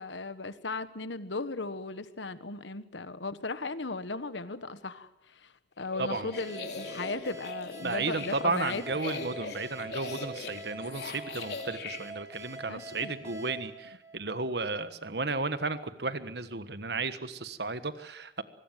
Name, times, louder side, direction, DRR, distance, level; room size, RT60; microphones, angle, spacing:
voice 1, 0.0-9.3 12.7-13.2, left 3 dB, 85° left, 12 dB, 1.5 m, -37 dB
sound 1, 5.8-12.0, left 4 dB, 65° left, 3.3 m, -41 dB
voice 2, 6.0-6.3 7.8-18.4, right 3 dB, 65° right, 12 dB, 1.4 m, -33 dB
sound 2, 6.3-14.8, right 1 dB, 15° right, 4.4 m, -45 dB
24.5 x 21.0 x 7.6 m, 0.81 s
head